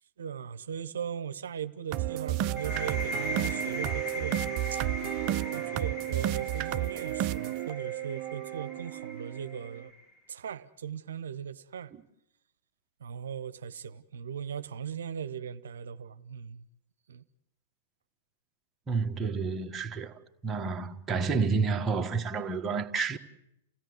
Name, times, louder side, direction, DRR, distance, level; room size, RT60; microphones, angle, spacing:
voice 1, 0.2-4.4 4.7-4.8 5.5-9.9 10.3-11.9 13.0-16.6 17.1-17.2, right 8 dB, 70° right, 0.9 m, -38 dB
sound 1, 1.9-9.9, right 13 dB, 45° right, 0.8 m, -32 dB
sound 2, 2.6-10.1, left 1 dB, 40° left, 3.4 m, -40 dB
voice 2, 18.9-20.2 20.4-23.2, right 4 dB, 20° right, 1.5 m, -30 dB
29.5 x 16.5 x 7.9 m
hypercardioid pair, 105°, 0 cm